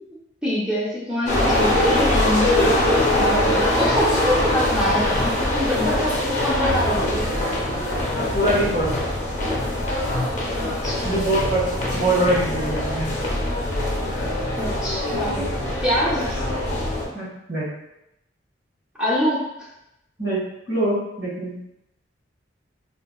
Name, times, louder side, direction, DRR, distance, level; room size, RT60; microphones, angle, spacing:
voice 1, 0.4-7.3 10.6-11.2 14.6-15.4 15.8-16.4 19.0-19.4, left 1 dB, 5° right, -7 dB, 0.6 m, -25 dB
sound 1, 1.3-17.1, left 1 dB, 40° left, 0.6 m, -23 dB
voice 2, 8.1-8.9 11.0-11.7 11.9-13.1 17.1-17.8 20.2-21.6, right 1 dB, 75° right, -10 dB, 1.5 m, -23 dB
3.7 x 2.2 x 2.3 m, 0.83 s
head